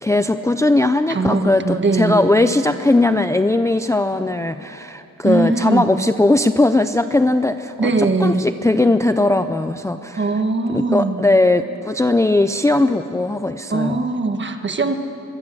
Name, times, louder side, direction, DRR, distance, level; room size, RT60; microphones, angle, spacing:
voice 1, 0.0-10.4 10.7-14.0, left 2 dB, 10° left, 9 dB, 0.5 m, -18 dB
voice 2, 1.1-2.2 5.2-5.8 7.8-8.4 10.2-11.2 13.7-14.9, right 3 dB, 35° right, 7 dB, 1.5 m, -20 dB
24.0 x 22.0 x 7.7 m, 2.7 s
wide cardioid pair, 145°, 32 cm